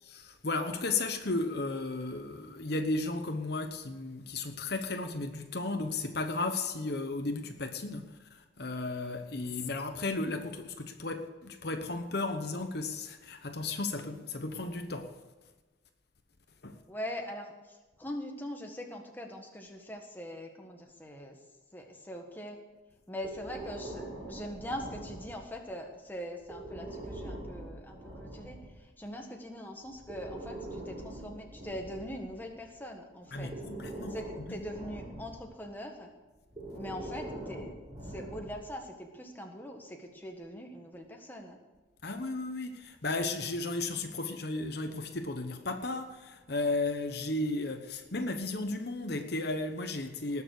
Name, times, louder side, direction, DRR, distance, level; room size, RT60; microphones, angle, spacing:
voice 1, 0.0-15.1 16.6-16.8 33.3-34.2 34.5-34.6 42.0-50.4, left 2 dB, 55° left, 1.0 m, -34 dB
voice 2, 16.9-21.4 21.7-22.6 23.1-33.5 34.1-36.1 36.7-37.8 38.0-41.6, equal, 10° left, 1.5 m, -42 dB
Breathing, 23.2-25.6 26.4-28.8 29.9-32.7 33.3-35.5 36.5-38.8, right 1 dB, 20° right, 4.2 m, -43 dB
19.0 x 7.0 x 6.6 m
head